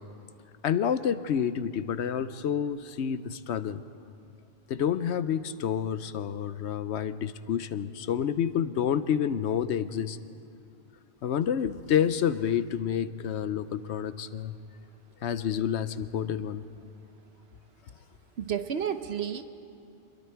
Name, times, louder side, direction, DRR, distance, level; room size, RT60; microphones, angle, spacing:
voice 1, 0.6-3.8 4.7-10.2 11.2-14.5 15.2-16.6, left 8 dB, 85° left, 13 dB, 1.0 m, -29 dB
voice 2, 18.4-19.4, right 8 dB, 70° right, 9 dB, 1.0 m, -31 dB
26.5 x 22.0 x 4.6 m, 2.7 s
omnidirectional pair, 1.1 m